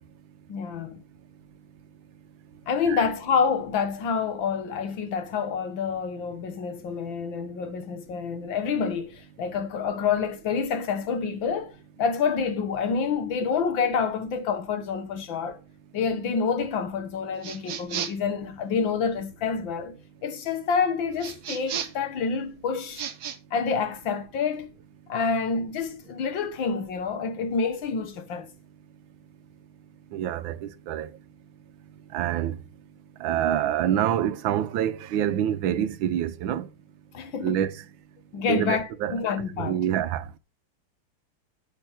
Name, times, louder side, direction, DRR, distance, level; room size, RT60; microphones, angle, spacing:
voice 1, 0.5-1.0 2.7-15.6 15.9-20.0 20.2-23.1 23.5-24.7 25.1-28.5 37.1-37.6 38.3-39.8, left 5 dB, 75° left, 2.0 m, -28 dB
sound 1, 17.4-18.3 21.2-22.1 22.9-23.4, right 9 dB, 60° right, 1.4 m, -34 dB
voice 2, 30.1-31.1 32.1-32.6 33.2-36.7 37.4-37.8 38.5-39.1 39.6-40.4, right 10 dB, 80° right, 1.5 m, -26 dB
8.4 x 6.6 x 4.7 m
omnidirectional pair, 2.1 m